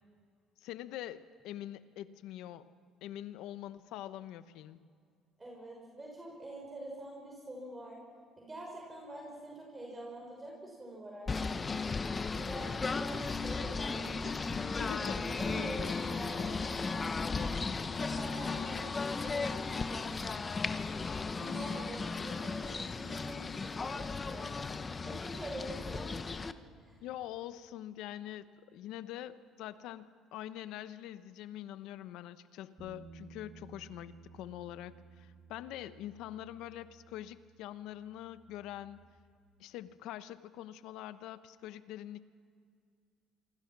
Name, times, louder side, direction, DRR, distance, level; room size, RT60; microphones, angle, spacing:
voice 1, 0.6-2.7 3.0-4.8 14.8-15.4 27.0-39.0 39.6-42.3, left 12 dB, 80° left, 13 dB, 0.9 m, -44 dB
voice 2, 5.4-8.0 8.3-11.9 12.3-17.5 17.8-20.3 20.7-27.0, right 1 dB, 20° right, -1 dB, 5.9 m, -46 dB
Singing / Bird, 11.3-26.5, left 4 dB, 25° left, 0.9 m, -36 dB
Bass guitar, 32.8-39.0, right 5 dB, 40° right, 6.5 m, -57 dB
26.5 x 23.5 x 6.1 m, 2.2 s
cardioid pair, 105°, 0 cm